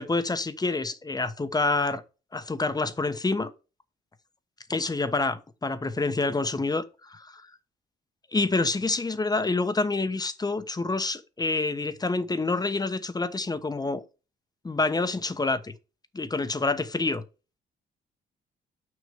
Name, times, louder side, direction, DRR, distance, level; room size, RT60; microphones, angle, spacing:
voice 1, 0.0-2.0 2.3-3.5 4.7-7.4 8.3-14.0 14.6-15.7 16.1-17.2, left 3 dB, 20° left, 1.0 m, -27 dB
6.5 x 5.9 x 5.0 m
cardioid pair, 90°, 20 cm